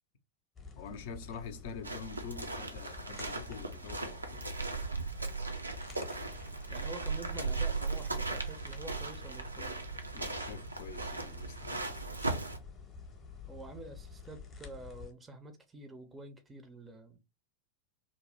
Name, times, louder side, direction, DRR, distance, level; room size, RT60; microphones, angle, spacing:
sound 1, 0.6-15.1, left 5 dB, 25° left, 0.8 m, -50 dB
voice 1, 0.8-4.5 10.1-12.0, left 5 dB, 55° left, 0.5 m, -46 dB
sound 2, 1.8-12.6, right 3 dB, 80° right, 0.4 m, -37 dB
voice 2, 6.7-9.9 13.5-17.2, right 2 dB, 15° right, 0.5 m, -48 dB
2.6 x 2.1 x 3.3 m
figure-of-eight pair, 90°, 0 cm